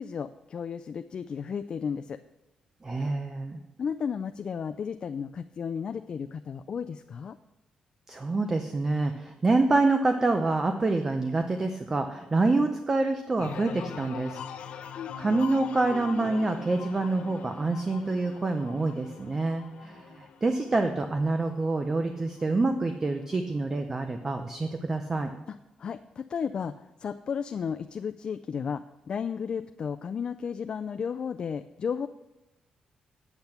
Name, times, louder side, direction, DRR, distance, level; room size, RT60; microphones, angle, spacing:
voice 1, 0.0-2.2 3.8-7.4 25.8-32.1, left 6 dB, 45° left, 9 dB, 0.4 m, -33 dB
voice 2, 2.8-3.6 8.1-14.4 15.2-25.3, right 3 dB, 25° right, 6 dB, 0.6 m, -27 dB
sound 1, 13.4-22.9 23.3-23.9, left 7 dB, 80° left, 0.8 m, -42 dB
8.8 x 8.0 x 5.8 m, 0.99 s
wide cardioid pair, 145°, 2 cm